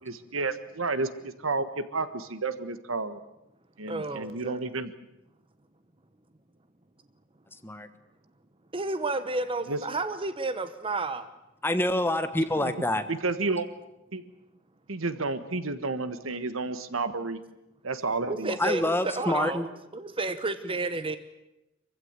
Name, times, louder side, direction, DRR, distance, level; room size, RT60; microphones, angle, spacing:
voice 1, 0.0-3.2 3.8-4.9 9.7-9.8 12.6-12.7 13.1-13.7 14.1-14.2 14.9-17.4 17.8-18.6, right 3 dB, 75° right, 12 dB, 1.5 m, -31 dB
voice 2, 3.9-4.6 8.7-11.3 18.3-19.7 19.9-21.2, right 2 dB, 25° right, 11 dB, 1.0 m, -31 dB
voice 3, 11.6-13.0 18.6-19.6, left 1 dB, 10° left, 10 dB, 1.3 m, -26 dB
24.5 x 15.5 x 9.7 m, 0.92 s
head